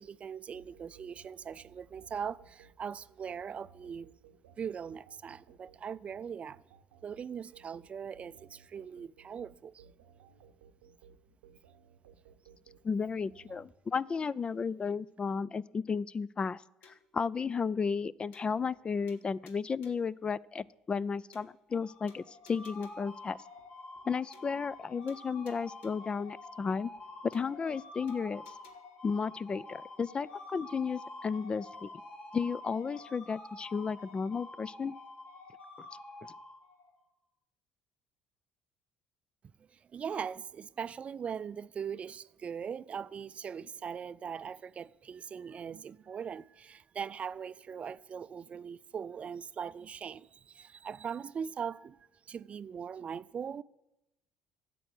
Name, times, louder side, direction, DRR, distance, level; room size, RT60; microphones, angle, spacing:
voice 1, 0.0-4.1 4.6-6.6 7.0-9.9 39.7-53.6, right 7 dB, 40° right, 0.4 m, -40 dB
sound 1, 0.5-13.7, right 7 dB, 85° right, 0.8 m, -60 dB
voice 2, 12.8-23.4 24.1-26.9 27.2-28.4 29.0-31.9 32.3-34.9, left 5 dB, 30° left, 0.3 m, -33 dB
sound 2, 16.8-17.2 17.6-17.7 17.9-18.0 18.3-18.8 19.1-20.1 20.6-20.7 20.9-21.0 21.3-21.8 22.1-23.2 23.6-23.7 23.9-24.1 24.3-24.8 25.1-26.1 26.6-26.7 26.9-27.0 27.3-27.8 28.1-28.7, left 5 dB, 70° left, 1.4 m, -61 dB
sound 3, 21.7-37.0, left 2 dB, 55° left, 1.9 m, -48 dB
11.0 x 7.7 x 8.1 m
hypercardioid pair, 65°, 3 cm